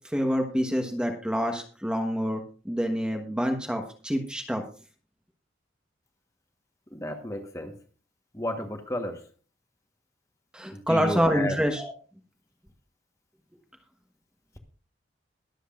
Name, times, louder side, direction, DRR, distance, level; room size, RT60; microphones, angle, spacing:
voice 1, 0.1-4.6 10.5-11.9, equal, 5° right, 4 dB, 1.2 m, -27 dB
voice 2, 6.9-7.7 8.3-9.2 10.7-11.6, left 1 dB, 15° left, 5 dB, 1.3 m, -32 dB
22.0 x 7.9 x 2.5 m, 0.39 s
head